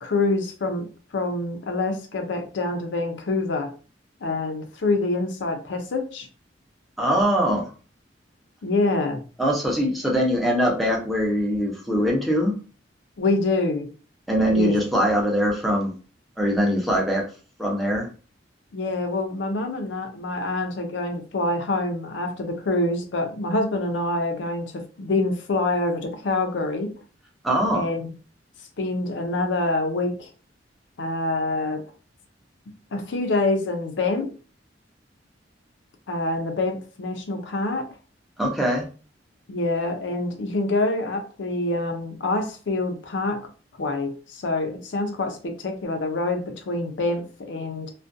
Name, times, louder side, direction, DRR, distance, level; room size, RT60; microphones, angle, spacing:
voice 1, 0.0-3.7 4.2-6.3 8.6-9.2 13.2-13.9 14.5-14.8 18.7-26.9 27.7-28.1 28.8-30.3 31.0-31.8 32.9-34.3 36.1-37.9 39.5-43.5 43.8-47.9, left 2 dB, 75° left, 0.5 m, -26 dB
voice 2, 7.0-7.7 9.4-12.5 14.3-15.9 16.4-17.2 17.6-18.1 27.4-27.9 38.4-38.8, equal, ahead, 0.6 m, -22 dB
2.4 x 2.2 x 2.5 m
head